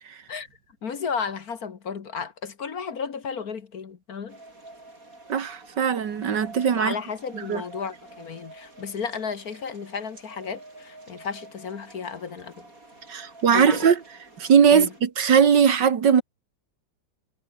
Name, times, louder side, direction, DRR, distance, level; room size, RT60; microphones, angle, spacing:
voice 1, 0.8-4.4 6.7-12.7 13.5-13.9 14.7-14.9, left 6 dB, 50° left, 1.8 m, -33 dB
sound 1, 4.3-15.0, right 2 dB, 45° right, 6.8 m, -48 dB
voice 2, 5.3-6.9 7.3-7.6 13.1-14.0 14.4-16.2, right 7 dB, 65° right, 2.2 m, -20 dB
omnidirectional pair, 2.1 m